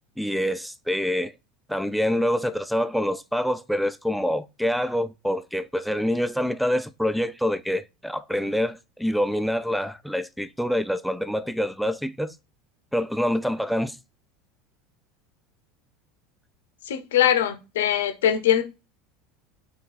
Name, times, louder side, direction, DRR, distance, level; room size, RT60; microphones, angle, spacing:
voice 1, 0.2-1.3 1.7-12.3 12.9-14.0, equal, ahead, 0.3 m, -26 dB
voice 2, 16.9-18.6, left 10 dB, 65° left, 0.7 m, -22 dB
3.7 x 3.5 x 4.2 m
figure-of-eight pair, 75°, 0 cm